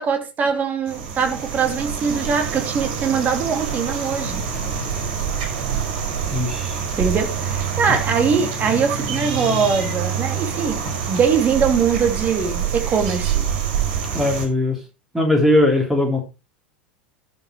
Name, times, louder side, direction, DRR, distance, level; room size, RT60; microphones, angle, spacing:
voice 1, 0.0-4.4 7.0-10.8 11.1-13.4, right 6 dB, 30° right, 2.9 m, -22 dB
sound 1, 0.9-14.5, right 7 dB, 55° right, 5.1 m, -26 dB
voice 2, 6.3-6.8 14.1-14.8 15.1-16.2, left 1 dB, 5° right, 3.3 m, -19 dB
13.0 x 6.3 x 4.5 m
figure-of-eight pair, 85°, 6 cm